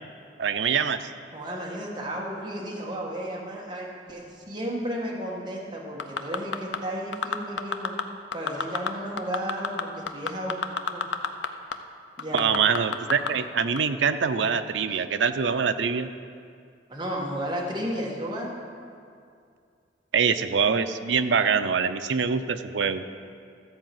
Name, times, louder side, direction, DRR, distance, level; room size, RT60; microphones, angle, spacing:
voice 1, 0.4-1.0 12.3-16.1 20.1-23.0, right 6 dB, 80° right, 10 dB, 0.5 m, -24 dB
voice 2, 1.3-7.9 8.3-10.5 10.9-11.0 12.2-12.5 16.9-18.5, equal, 25° right, -3 dB, 1.5 m, -33 dB
sound 1, 6.0-6.8 7.1-8.0 8.3-8.9 9.2-11.5 11.7-11.8 12.2-13.3 13.8-13.9, left 6 dB, 80° left, 0.6 m, -27 dB
13.5 x 4.8 x 7.6 m, 2.3 s
head